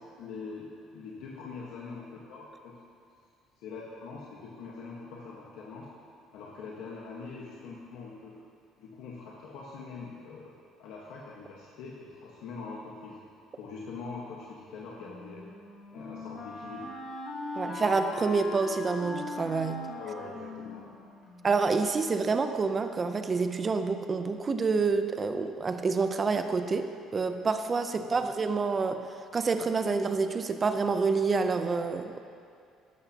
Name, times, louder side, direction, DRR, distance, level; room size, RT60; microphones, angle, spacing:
voice 1, 0.2-2.8 3.6-5.9 6.3-8.4 8.8-10.5 10.8-13.2 13.6-15.5 15.9-16.9 19.9-20.9 28.1-28.3, left 4 dB, 80° left, -5 dB, 1.4 m, -43 dB
Wind instrument woodwind instrument, 15.0-21.9, left 2 dB, 45° left, 1.8 m, -40 dB
voice 2, 17.6-19.9 21.4-29.1 29.3-32.2, right 4 dB, 30° right, 8 dB, 0.7 m, -28 dB
12.5 x 11.5 x 3.0 m, 2.4 s
cardioid pair, 110°, 0 cm